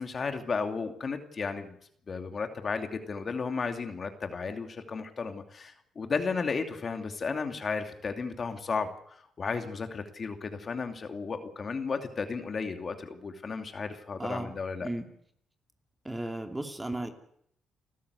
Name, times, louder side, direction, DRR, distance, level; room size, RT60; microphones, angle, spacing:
voice 1, 0.0-1.7 2.1-14.9, left 5 dB, 40° left, 6 dB, 2.6 m, -34 dB
voice 2, 14.2-14.6 14.8-15.1 16.0-17.1, right 1 dB, 15° right, 5 dB, 2.6 m, -35 dB
30.0 x 13.0 x 8.3 m, 0.69 s
cardioid pair, 90°, 0 cm